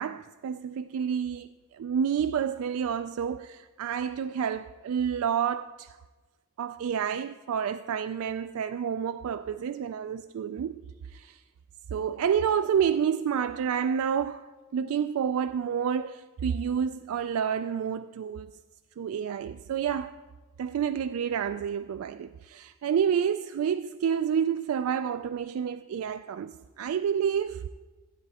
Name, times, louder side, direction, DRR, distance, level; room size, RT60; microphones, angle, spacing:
voice 1, 0.0-1.5 1.8-5.9 6.6-10.8 11.1-11.4 11.9-14.4 14.7-18.5 19.0-20.1 20.6-27.7, right 7 dB, 75° right, 0.3 m, -29 dB
15.0 x 9.6 x 4.1 m
head